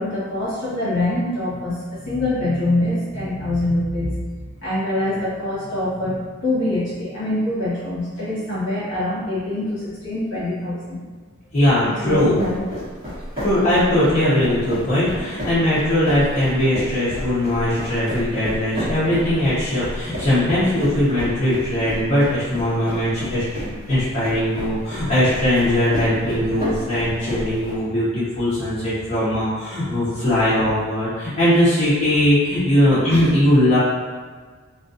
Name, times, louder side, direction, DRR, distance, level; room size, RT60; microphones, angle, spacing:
voice 1, 0.0-11.0 11.8-12.6, left 1 dB, 60° left, -9 dB, 1.1 m, -24 dB
voice 2, 11.5-12.3 13.4-33.8, left 1 dB, 30° left, -13 dB, 0.7 m, -20 dB
sound 1, 12.1-27.8, equal, 25° right, 1.0 m, -31 dB
2.4 x 2.3 x 2.5 m, 1.5 s
head